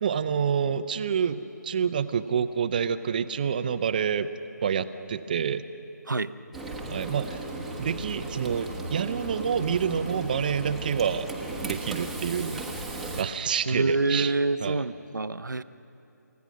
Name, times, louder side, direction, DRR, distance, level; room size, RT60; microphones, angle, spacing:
voice 1, 0.0-4.3 4.6-5.6 6.9-7.4 7.8-11.3 11.6-12.9 13.2-14.3 14.6-14.8, right 7 dB, 30° right, 12 dB, 0.6 m, -28 dB
Frying (food), 6.5-13.2, right 2 dB, ahead, 1.1 m, -36 dB
voice 2, 13.7-15.6, right 3 dB, 80° right, 12 dB, 0.7 m, -26 dB
29.0 x 15.5 x 6.3 m, 2.9 s
figure-of-eight pair, 155°, 10 cm